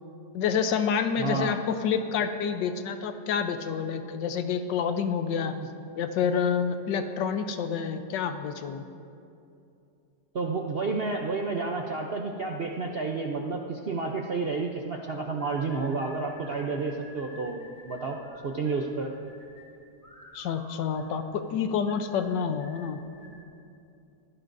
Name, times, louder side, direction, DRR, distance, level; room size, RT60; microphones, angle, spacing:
voice 1, 0.3-5.5 6.0-8.8 20.3-23.0, left 7 dB, 80° left, 8 dB, 1.4 m, -28 dB
voice 2, 1.2-1.5 5.5-5.7 10.3-18.2 18.4-19.1, right 4 dB, 60° right, 2 dB, 0.6 m, -30 dB
sound 1, 15.4-23.4, left 1 dB, 10° left, 3.3 m, -51 dB
23.0 x 15.5 x 2.6 m, 2.6 s
omnidirectional pair, 1.9 m